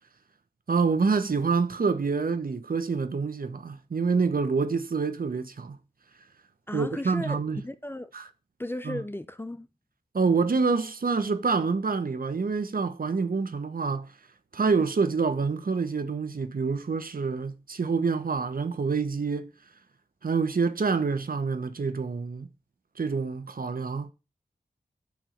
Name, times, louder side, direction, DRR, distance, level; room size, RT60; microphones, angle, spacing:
voice 1, 0.7-5.8 6.7-7.6 8.1-8.3 8.8-9.0 10.1-14.1 14.5-19.5 20.2-22.5 23.0-24.1, right 4 dB, 60° right, 1.2 m, -27 dB
voice 2, 6.7-8.1 8.6-9.7, left 1 dB, 15° left, 0.7 m, -35 dB
9.5 x 3.6 x 6.6 m
cardioid pair, 50°, 16 cm